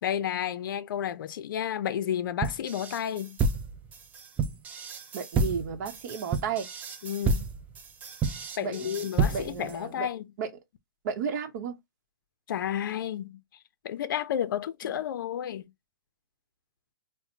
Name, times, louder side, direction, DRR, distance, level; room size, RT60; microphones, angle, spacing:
voice 1, 0.0-3.4 7.0-7.5 8.6-10.2 12.5-13.4 13.8-15.7, left 9 dB, 65° left, 0.5 m, -31 dB
sound 1, 2.4-9.7, right 4 dB, 15° right, 0.4 m, -30 dB
voice 2, 5.1-6.7 8.6-10.1 10.4-10.5 11.0-11.7 14.8-14.9, right 6 dB, 50° right, 0.8 m, -33 dB
4.2 x 2.1 x 2.7 m
hypercardioid pair, 145°, 12 cm